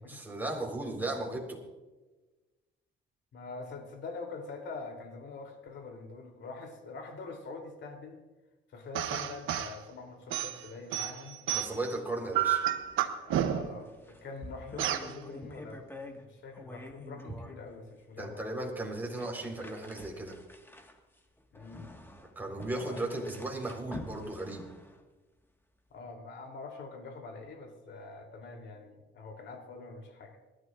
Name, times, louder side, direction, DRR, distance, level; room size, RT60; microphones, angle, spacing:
voice 1, 0.0-1.6 11.5-12.6 18.2-20.4 22.3-24.7, right 2 dB, 10° right, -1 dB, 4.0 m, -36 dB
voice 2, 3.3-8.2 8.7-11.4 13.2-18.4 21.5-21.9 22.8-23.0 25.9-30.4, left 4 dB, 70° left, 3 dB, 3.2 m, -44 dB
sound 1, 9.0-9.8 10.3-11.9 12.3-13.8 14.8-15.1, right 11 dB, 90° right, 1.0 m, -30 dB
sound 2, 12.8-13.0 13.3-13.4 13.8-16.3 16.5-17.6 18.2-18.3 19.0-25.1, left 1 dB, 10° left, 1.7 m, -48 dB
26.0 x 12.5 x 2.5 m, 1.2 s
cardioid pair, 90°, 20 cm